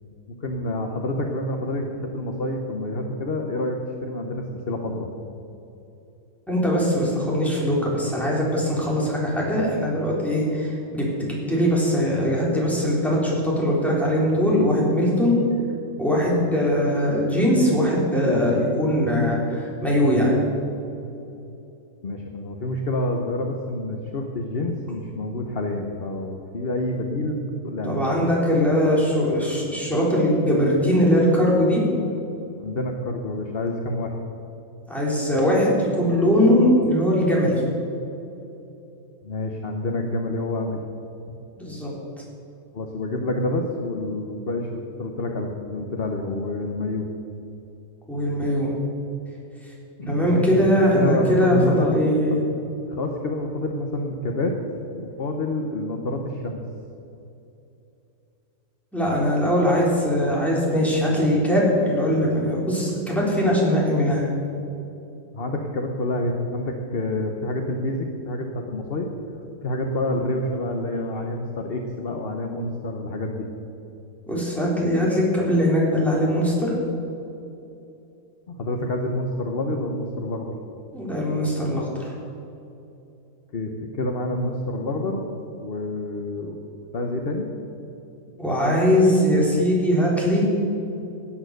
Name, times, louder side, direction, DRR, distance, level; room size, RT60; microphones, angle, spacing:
voice 1, 0.4-5.1 22.0-28.0 32.6-34.2 39.2-40.8 42.7-47.1 50.0-50.6 50.9-52.0 52.9-54.5 54.9-56.6 65.3-69.1 69.6-73.5 78.5-80.6 83.5-85.2 85.6-86.6 86.9-87.5, left 1 dB, 45° left, 3 dB, 1.2 m, -28 dB
voice 2, 6.5-15.4 16.0-20.3 27.8-31.8 34.9-37.6 41.6-41.9 48.1-48.7 50.1-52.4 58.9-64.2 74.3-76.7 80.9-82.1 88.4-90.5, equal, ahead, -5 dB, 3.7 m, -21 dB
17.0 x 8.9 x 6.6 m, 2.8 s
omnidirectional pair, 1.5 m